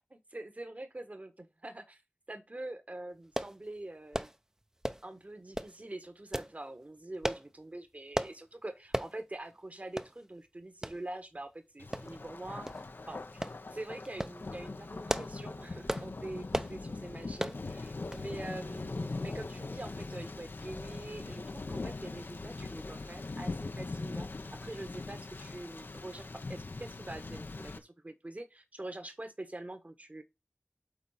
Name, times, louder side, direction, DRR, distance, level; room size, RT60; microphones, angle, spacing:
voice 1, 0.1-2.0 2.3-4.3 5.0-30.2, right 1 dB, 45° right, 1.4 m, -45 dB
sound 1, 3.4-3.6 4.1-4.4 4.8-5.1 5.5-5.8 6.3-6.5 7.2-7.5 8.1-8.4 8.9-9.1 9.5-9.6 10.0-10.1 10.8-11.0 11.9-12.3 12.7-12.8 13.4-13.6 14.0-14.4 14.9-15.4 15.9-16.1 16.5-16.8 17.4-17.6 18.1-18.3 18.6-18.7, right 1 dB, 15° right, 0.6 m, -35 dB
Thunder, 11.8-27.8, left 3 dB, 85° left, 0.8 m, -41 dB
8.4 x 3.8 x 5.7 m
wide cardioid pair, 50°, 3 cm